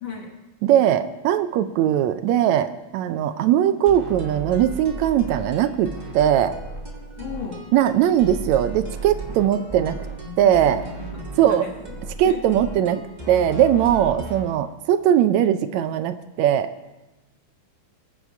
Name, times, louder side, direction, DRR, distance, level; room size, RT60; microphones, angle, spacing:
voice 1, 0.0-0.4 7.2-7.7 9.4-9.6 10.2-12.0 12.2-12.6, left 5 dB, 50° left, 2 dB, 1.6 m, -36 dB
voice 2, 0.6-6.5 7.7-10.0 10.4-10.8 11.4-11.6 12.2-16.7, right 10 dB, 80° right, 11 dB, 1.8 m, -20 dB
sound 1, 3.9-14.5, right 2 dB, 20° right, 1.2 m, -35 dB
21.0 x 8.9 x 4.6 m, 1.1 s
omnidirectional pair, 3.3 m